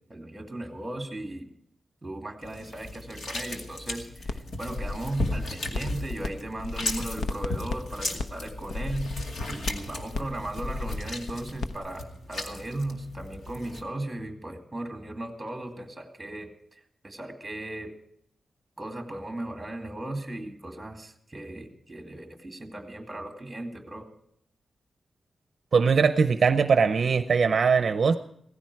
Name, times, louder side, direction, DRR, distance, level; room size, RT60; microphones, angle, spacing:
voice 1, 0.1-1.5 2.0-9.1 9.5-16.5 17.0-17.9 18.8-24.1, right 1 dB, 10° right, 4 dB, 2.3 m, -36 dB
sound 1, 2.4-13.8, left 2 dB, 70° left, 2.2 m, -36 dB
sound 2, 4.3-4.4 4.7-6.3 6.6-11.8, left 3 dB, 90° left, 0.9 m, -34 dB
voice 2, 25.7-28.2, right 5 dB, 50° right, 10 dB, 0.6 m, -21 dB
17.0 x 15.0 x 4.7 m, 0.73 s
wide cardioid pair, 160°, 0 cm